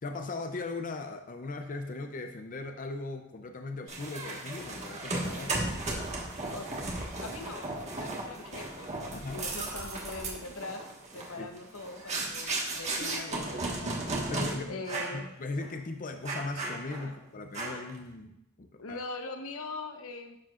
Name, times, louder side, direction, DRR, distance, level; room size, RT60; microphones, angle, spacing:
voice 1, 0.0-5.6 9.1-9.4 11.4-11.5 14.3-14.8 15.1-18.3 18.6-19.0, left 3 dB, 40° left, 6 dB, 0.5 m, -38 dB
sound 1, 3.9-14.5 14.9-15.2 15.6-15.7 16.3-17.1 17.5-18.0, right 2 dB, 35° right, 1.5 m, -35 dB
voice 2, 7.2-10.8 11.1-14.0 14.7-15.3 17.0-17.2 18.8-20.4, left 3 dB, 85° left, 5 dB, 0.9 m, -42 dB
11.5 x 7.5 x 2.5 m, 0.82 s
head